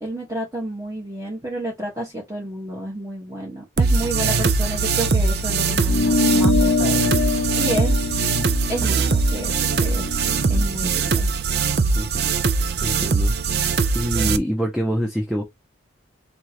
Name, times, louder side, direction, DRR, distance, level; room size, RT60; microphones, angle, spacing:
voice 1, 0.0-8.1 8.7-10.1 10.5-11.3, right 1 dB, 15° right, 1.7 m, -30 dB
sound 1, 3.8-14.4, right 4 dB, 55° right, 0.5 m, -21 dB
sound 2, 5.9-10.7, left 3 dB, 75° left, 0.7 m, -24 dB
voice 2, 11.9-12.3 12.8-13.4 13.9-15.4, equal, ahead, 0.7 m, -25 dB
3.8 x 3.6 x 3.0 m
head